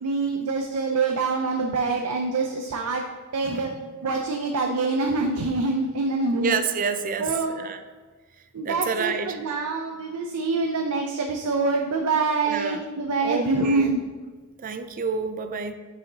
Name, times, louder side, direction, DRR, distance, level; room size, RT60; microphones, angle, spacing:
voice 1, 0.0-3.0 3.3-3.7 4.0-6.5 7.2-7.5 8.5-14.0, right 3 dB, 90° right, 2 dB, 0.6 m, -25 dB
voice 2, 3.4-3.8 6.4-7.8 8.6-9.4 12.5-12.8 13.2-13.9 14.6-15.7, right 5 dB, 40° right, 9 dB, 0.4 m, -29 dB
8.7 x 5.0 x 2.8 m, 1.4 s
head